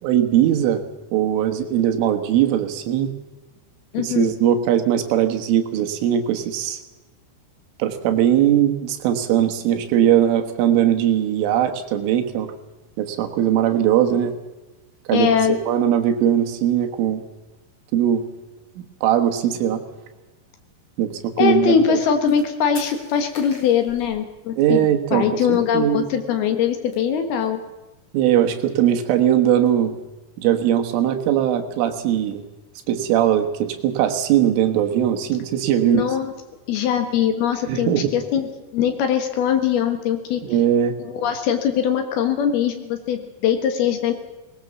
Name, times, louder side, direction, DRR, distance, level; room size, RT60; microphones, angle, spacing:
voice 1, 0.0-0.8 1.1-3.1 4.0-6.8 7.8-12.5 13.0-14.4 15.1-15.3 15.7-17.2 17.9-18.2 18.8-19.8 21.0-22.0 24.6-26.1 28.1-30.0 30.4-32.4 32.9-36.0 37.7-38.1 40.4-40.9, right 10 dB, 75° right, 5 dB, 3.9 m, -20 dB
voice 2, 3.9-4.3 15.1-15.6 21.4-27.6 35.8-36.3 36.7-40.4 41.0-44.1, left 8 dB, 65° left, 7 dB, 2.8 m, -21 dB
sound 1, 22.3-22.5 22.8-24.9 25.2-25.3 25.5-25.6 25.8-26.3 26.6-27.8 28.2-29.7, left 2 dB, 35° left, 4.5 m, -43 dB
20.0 x 19.5 x 7.1 m, 1.1 s
omnidirectional pair, 5.8 m